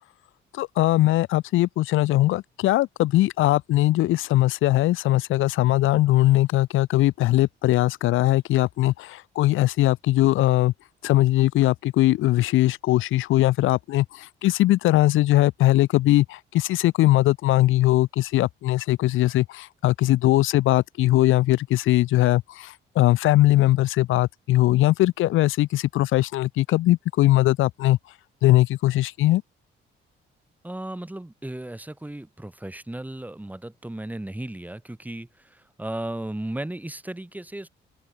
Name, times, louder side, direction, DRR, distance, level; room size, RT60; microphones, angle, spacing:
voice 1, 0.5-10.7 11.0-28.0 28.4-29.4, left 16 dB, 85° left, 0.9 m, -20 dB
voice 2, 30.6-37.7, right 1 dB, 10° right, 3.0 m, -35 dB
open air
cardioid pair, 90°, 20 cm